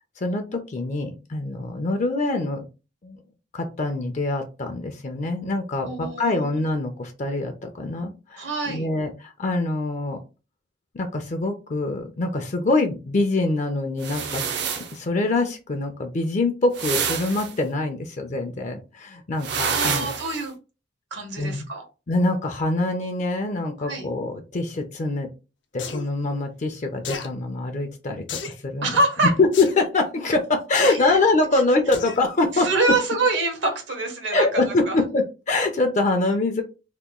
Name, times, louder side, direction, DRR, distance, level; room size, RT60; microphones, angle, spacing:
voice 1, 0.2-2.6 3.0-3.2 3.5-10.2 10.9-20.1 21.4-21.6 22.1-25.3 25.7-29.0 29.4-32.7 34.3-36.6, left 2 dB, 40° left, 5 dB, 0.4 m, -24 dB
voice 2, 5.8-6.5 8.4-8.9 19.7-20.5 21.1-21.8 23.8-24.1 28.8-29.3 30.8-31.2 31.5-31.6 32.5-35.0, right 2 dB, 80° right, 3 dB, 1.1 m, -25 dB
sound 1, 14.0-15.0 16.7-17.5 19.4-20.5, right 7 dB, 65° right, 0.5 m, -27 dB
sound 2, 25.8-26.0 27.0-27.3 28.3-28.6 29.5-29.7 30.7-31.0 31.9-32.2 32.7-32.8, left 6 dB, 80° left, 0.6 m, -32 dB
2.9 x 2.2 x 3.6 m, 0.31 s
head